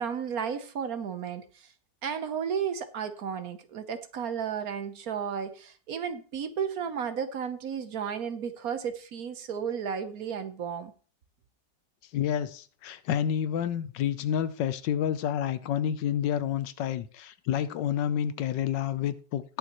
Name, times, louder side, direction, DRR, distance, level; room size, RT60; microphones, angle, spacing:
voice 1, 0.0-1.7 2.0-10.9, right 7 dB, 60° right, 1.2 m, -33 dB
voice 2, 12.1-19.6, left 9 dB, 80° left, 1.4 m, -29 dB
19.5 x 6.9 x 3.0 m
omnidirectional pair, 1.9 m